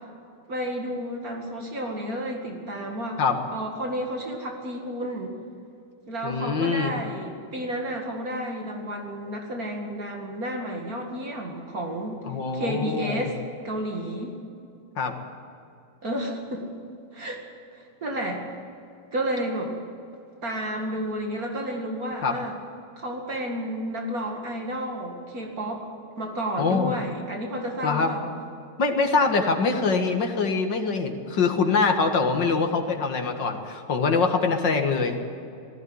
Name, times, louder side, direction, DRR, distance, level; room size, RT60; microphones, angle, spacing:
voice 1, 0.5-3.2 3.5-5.4 6.1-12.2 12.5-13.3 13.6-14.4 16.0-16.7 17.1-17.4 17.7-18.4 19.1-19.7 20.4-22.6 23.0-25.8 26.2-28.3, right 1 dB, 55° right, 1 dB, 2.6 m, -31 dB
voice 2, 6.2-6.9 12.2-13.3 15.0-15.2 22.2-22.3 26.6-26.9 27.8-28.1 28.8-35.2, left 4 dB, 80° left, 4 dB, 2.5 m, -24 dB
18.5 x 15.0 x 9.6 m, 2.6 s
omnidirectional pair, 1.9 m